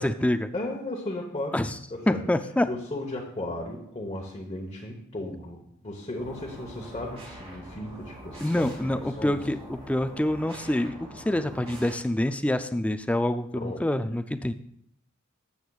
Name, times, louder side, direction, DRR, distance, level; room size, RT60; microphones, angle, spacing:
voice 1, 0.0-0.5 1.5-1.8 2.1-2.7 8.4-14.5, left 1 dB, 5° left, 10 dB, 0.4 m, -26 dB
voice 2, 0.5-1.6 1.9-2.2 2.7-8.7 8.9-9.4 11.5-11.7 13.5-13.8, left 1 dB, 30° left, -2 dB, 1.0 m, -35 dB
sound 1, 6.2-12.0, right 1 dB, 30° right, 2.1 m, -44 dB
13.0 x 8.0 x 2.4 m, 0.73 s
head